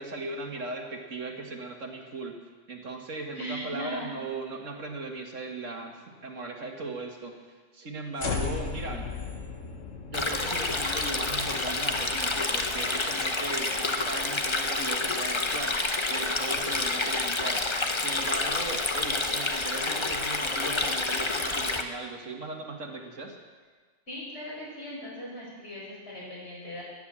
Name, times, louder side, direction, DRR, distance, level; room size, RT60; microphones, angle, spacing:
voice 1, 0.0-2.4 2.7-9.1 10.1-17.6 18.0-23.4, right 3 dB, 75° right, 1 dB, 2.1 m, -38 dB
voice 2, 3.3-4.1 24.1-26.8, equal, 55° left, -6 dB, 6.6 m, -38 dB
sound 1, 8.2-14.5, left 5 dB, 75° left, 1.7 m, -37 dB
Stream, 10.1-21.8, left 3 dB, 25° left, 0.8 m, -28 dB
15.0 x 10.5 x 7.5 m, 1.4 s
omnidirectional pair, 1.3 m